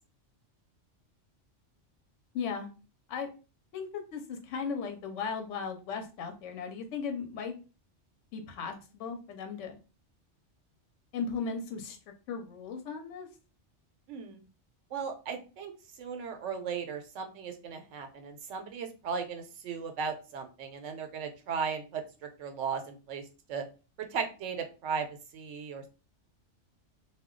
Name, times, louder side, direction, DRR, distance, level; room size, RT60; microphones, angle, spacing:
voice 1, 2.3-2.7 3.1-3.3 3.7-7.6 8.3-9.8 11.1-12.0 12.3-13.3, left 5 dB, 85° left, 5 dB, 0.9 m, -36 dB
voice 2, 14.1-14.4 14.9-15.7 16.0-23.2 23.5-23.6 24.1-25.9, right 6 dB, 80° right, 6 dB, 1.0 m, -36 dB
2.2 x 2.2 x 3.6 m, 0.33 s
omnidirectional pair, 1.2 m